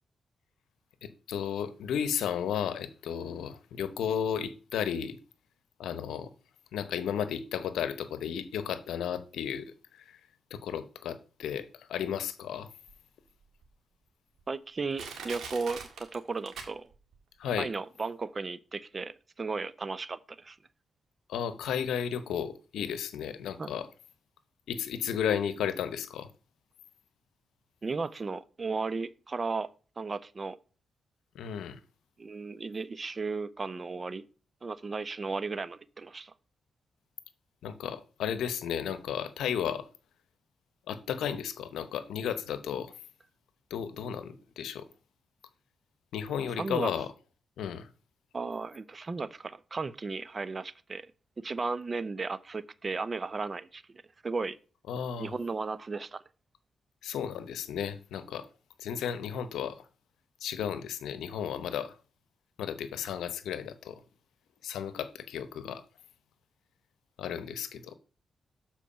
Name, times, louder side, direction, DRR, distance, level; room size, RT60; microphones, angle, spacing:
voice 1, 1.0-5.2 5.8-6.3 6.7-10.2 10.5-12.7 17.4-17.7 21.3-23.9 24.7-26.3 31.3-31.8 37.6-39.9 40.9-42.9 43.7-44.9 46.1-47.1 47.6-47.9 54.9-55.3 57.0-58.5 58.8-59.8 60.4-61.9 62.6-64.0 64.6-65.8 67.2-68.0, left 8 dB, 80° left, 0.8 m, -34 dB
Crushing, 12.9-13.0 13.6-13.7 14.4-14.5 15.0-17.2 17.5-17.6, right 5 dB, 75° right, 1.7 m, -42 dB
voice 2, 14.5-16.9 17.6-20.6 23.6-23.7 27.8-29.7 30.0-30.6 32.2-34.2 34.6-36.3 46.6-46.9 48.3-51.1 51.4-53.8 54.2-54.6 55.2-56.2, right 4 dB, 40° right, 0.6 m, -35 dB
7.2 x 4.5 x 5.7 m
supercardioid pair, 45°, 0 cm